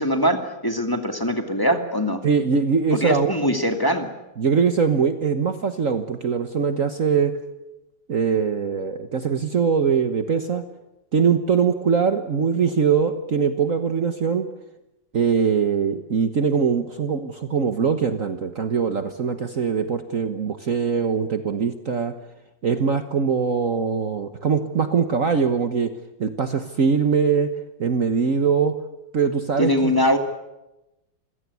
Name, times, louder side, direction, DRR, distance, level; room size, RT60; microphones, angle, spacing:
voice 1, 0.0-2.2 2.9-4.1 29.6-30.2, equal, 10° left, 5 dB, 2.2 m, -22 dB
voice 2, 2.2-3.3 4.4-7.3 8.1-10.6 11.1-14.5 15.1-22.1 22.6-25.9 26.2-27.5 27.8-28.7 29.1-29.9, right 6 dB, 50° right, 8 dB, 1.5 m, -22 dB
27.0 x 16.5 x 9.6 m, 0.95 s
omnidirectional pair, 2.0 m